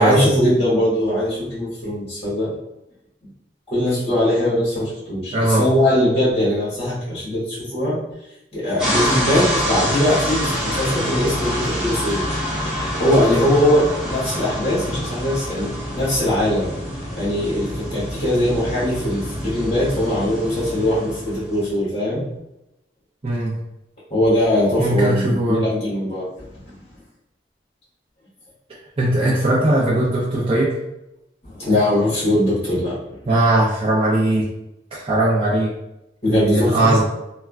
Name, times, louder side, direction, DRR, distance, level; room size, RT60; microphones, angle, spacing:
voice 1, 0.0-2.5 3.7-8.0 8.5-12.3 13.0-16.7 17.1-22.2 24.1-26.3 26.7-26.8 31.5-33.0 36.2-37.0, left 1 dB, 35° left, -8 dB, 1.3 m, -20 dB
voice 2, 5.3-5.6 23.2-23.6 24.8-25.7 29.0-30.7 33.3-34.5 34.9-35.7 36.3-37.0, right 1 dB, 35° right, -7 dB, 0.5 m, -19 dB
sound 1, 8.8-21.6, equal, ahead, 1.1 m, -26 dB
3.3 x 2.1 x 2.3 m, 0.89 s
head